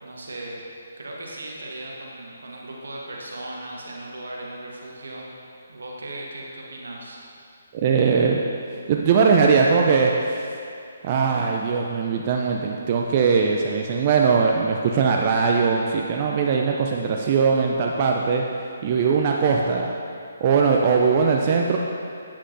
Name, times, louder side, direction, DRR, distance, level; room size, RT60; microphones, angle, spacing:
voice 1, 0.0-5.4 5.7-7.2, right 1 dB, 75° right, -2 dB, 1.3 m, -37 dB
voice 2, 7.7-8.4 8.9-10.5 11.0-18.4 18.8-19.9 20.4-21.8, right 5 dB, 35° right, 0 dB, 0.4 m, -20 dB
8.6 x 7.2 x 2.6 m, 2.5 s
figure-of-eight pair, 145°, 0 cm